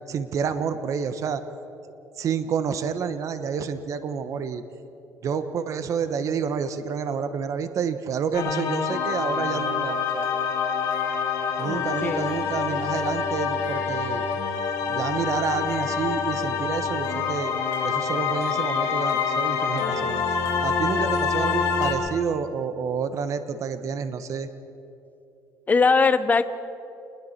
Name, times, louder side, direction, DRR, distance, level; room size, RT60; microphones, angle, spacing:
voice 1, 0.1-1.4 2.2-4.6 5.2-10.3 11.6-14.2 14.9-17.5 17.8-20.2 20.6-24.5, right 6 dB, 60° right, 10 dB, 1.3 m, -29 dB
sound 1, 8.3-21.9, left 6 dB, 80° left, 5.5 m, -26 dB
voice 2, 11.7-12.3 21.0-21.5 25.7-26.4, left 4 dB, 25° left, 12 dB, 0.9 m, -22 dB
28.0 x 21.0 x 4.5 m, 2.7 s
cardioid pair, 95°, 6 cm